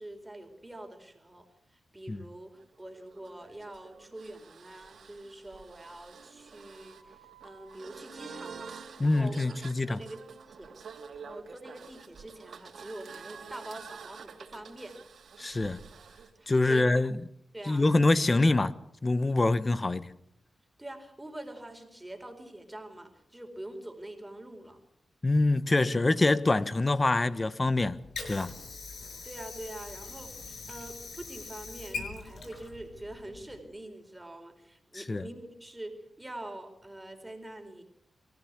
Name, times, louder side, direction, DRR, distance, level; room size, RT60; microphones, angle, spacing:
voice 1, 0.0-1.5 1.9-8.7 9.0-9.6 9.9-10.7 11.1-14.9 16.4-16.9 17.5-17.9 20.8-24.8 29.2-37.8, right 1 dB, 15° right, 4.4 m, -45 dB
sound 1, 2.6-16.3, right 6 dB, 75° right, 2.9 m, -48 dB
voice 2, 9.0-10.0 15.4-15.8 16.5-17.2 17.7-18.7 19.0-20.1 25.2-28.5 34.9-35.3, left 2 dB, 30° left, 1.2 m, -25 dB
Water / Sink (filling or washing), 27.7-33.7, left 4 dB, 70° left, 5.9 m, -43 dB
24.0 x 14.5 x 8.4 m
cardioid pair, 60°, 0 cm